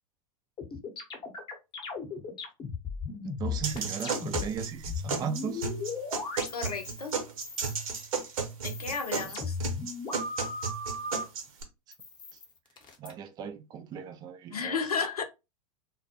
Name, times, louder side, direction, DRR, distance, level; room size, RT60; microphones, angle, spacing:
sound 1, 0.6-7.1 7.4-8.1 8.5-11.2 11.9-13.1, left 4 dB, 25° left, 0.8 m, -37 dB
voice 1, 3.2-5.7 9.2-9.3 13.0-14.7, right 7 dB, 20° right, 0.3 m, -37 dB
sound 2, 3.6-11.6, right 5 dB, 65° right, 0.9 m, -34 dB
voice 2, 6.5-7.1 8.6-9.6 14.5-15.2, left 5 dB, 85° left, 0.6 m, -33 dB
2.2 x 2.1 x 2.8 m
figure-of-eight pair, 95°, 19 cm